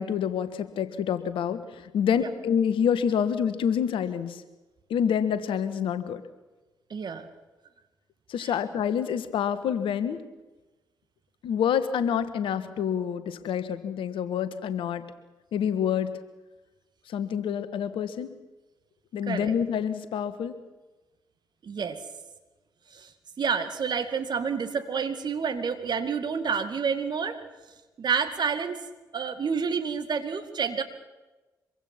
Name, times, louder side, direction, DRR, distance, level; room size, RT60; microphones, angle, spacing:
voice 1, 0.0-4.4 4.9-6.2 8.3-10.2 11.4-15.0 15.5-16.2 17.1-18.3 19.1-20.5, left 8 dB, 65° left, 12 dB, 1.5 m, -27 dB
voice 2, 6.9-7.3 8.4-8.6 19.3-19.5 21.6-22.0 22.9-23.1 23.4-27.4 28.0-28.8 29.1-30.8, right 6 dB, 50° right, 8 dB, 2.3 m, -29 dB
24.5 x 23.5 x 5.9 m, 1.1 s
hypercardioid pair, 40°, 10 cm